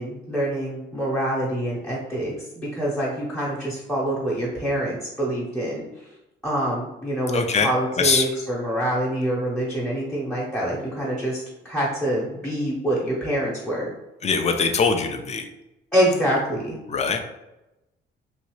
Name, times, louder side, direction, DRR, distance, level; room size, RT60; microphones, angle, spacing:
voice 1, 0.0-6.1 6.4-13.9 15.9-16.8, right 1 dB, 5° left, -7 dB, 0.9 m, -26 dB
voice 2, 7.3-7.7 7.9-8.3 14.2-15.5 16.9-17.2, left 5 dB, 35° left, 6 dB, 0.5 m, -22 dB
3.0 x 2.7 x 3.1 m, 0.96 s
cardioid pair, 90°, 20 cm